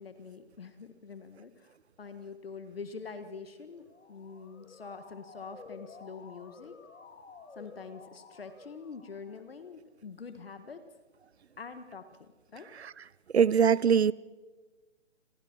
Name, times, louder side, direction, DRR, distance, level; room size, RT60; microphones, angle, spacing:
voice 1, 0.0-6.8 7.5-10.8 11.6-12.7, left 5 dB, 50° left, 1.7 m, -45 dB
Motor vehicle (road) / Siren, 3.7-9.6, left 5 dB, 85° left, 3.2 m, -52 dB
voice 2, 13.3-14.1, right 7 dB, 60° right, 0.7 m, -22 dB
29.5 x 23.0 x 4.5 m
hypercardioid pair, 175°, 37 cm